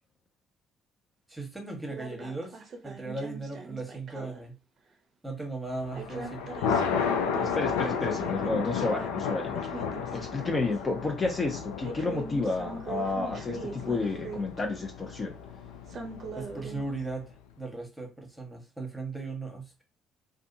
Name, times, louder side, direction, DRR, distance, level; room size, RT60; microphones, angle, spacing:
voice 1, 1.3-4.6 5.2-6.5 16.3-19.8, right 3 dB, 10° right, 2 dB, 1.2 m, -37 dB
brett naucke a n a reel, 1.9-4.5 5.9-10.5 10.9-11.0 11.8-14.6 15.9-16.8, right 4 dB, 50° right, 0.6 m, -41 dB
Thunder, 5.8-17.1, left 6 dB, 85° left, 0.4 m, -33 dB
voice 2, 7.4-9.5 10.1-15.3, left 3 dB, 35° left, 1 dB, 0.8 m, -31 dB
2.5 x 2.4 x 2.6 m, 0.28 s
hypercardioid pair, 55°, 0 cm